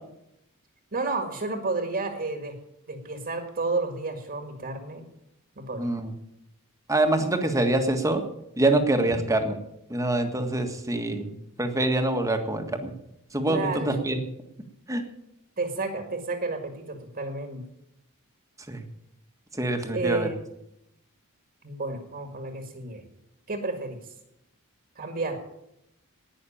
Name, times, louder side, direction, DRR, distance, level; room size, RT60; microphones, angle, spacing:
voice 1, 0.9-2.6 2.9-5.0 5.6-5.9 13.5-14.0 15.6-17.6 19.9-20.3 21.6-23.0 23.5-24.0 25.0-25.4, right 3 dB, 40° right, 5 dB, 1.9 m, -31 dB
voice 2, 5.8-6.1 6.9-8.2 8.6-9.5 9.9-12.9 13.3-14.2 14.9-15.0 18.7-18.8 19.6-20.3, right 2 dB, 15° right, 6 dB, 1.6 m, -25 dB
19.0 x 6.4 x 8.6 m, 0.83 s
head